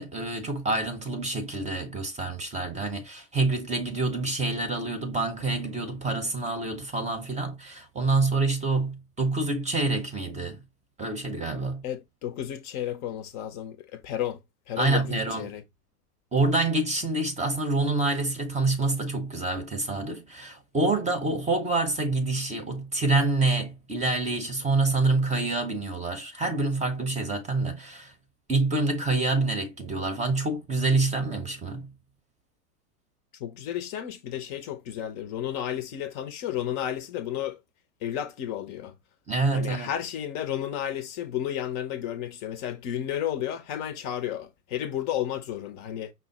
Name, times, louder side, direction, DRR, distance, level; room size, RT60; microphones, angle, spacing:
voice 1, 0.0-10.6 11.0-11.8 14.8-15.5 16.3-28.1 28.5-31.9 39.3-39.9, right 3 dB, 15° right, 0.8 m, -27 dB
voice 2, 11.8-14.4 14.7-15.6 33.3-37.6 38.0-38.9 39.5-46.1, left 10 dB, 35° left, 0.7 m, -32 dB
5.6 x 2.1 x 4.0 m
hypercardioid pair, 105°, 48 cm